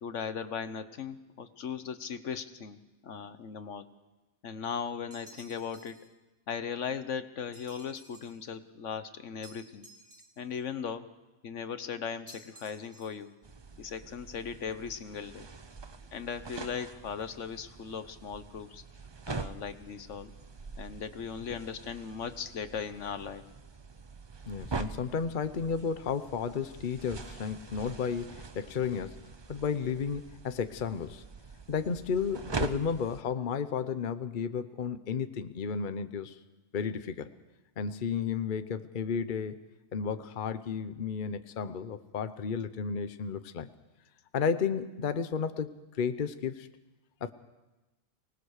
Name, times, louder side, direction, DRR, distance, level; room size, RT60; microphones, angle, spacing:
voice 1, 0.0-2.8 3.0-3.9 4.4-6.0 6.5-9.9 10.4-11.1 11.4-13.3 13.8-15.5 16.1-18.8 19.3-20.3 20.8-23.4, left 6 dB, 75° left, 11 dB, 1.3 m, -38 dB
sound 1, 5.1-6.1 7.5-8.4 9.4-10.6 12.3-13.3, right 2 dB, 80° right, 3.5 m, -55 dB
sound 2, 13.4-33.2, right 4 dB, 25° right, 0.6 m, -43 dB
voice 2, 24.5-29.2 29.5-31.2 31.7-36.4 36.7-37.3 37.8-39.6 39.9-43.7 44.3-46.7 47.2-47.3, left 6 dB, 45° left, 11 dB, 0.9 m, -33 dB
24.0 x 19.5 x 6.5 m, 1.1 s
omnidirectional pair, 1.3 m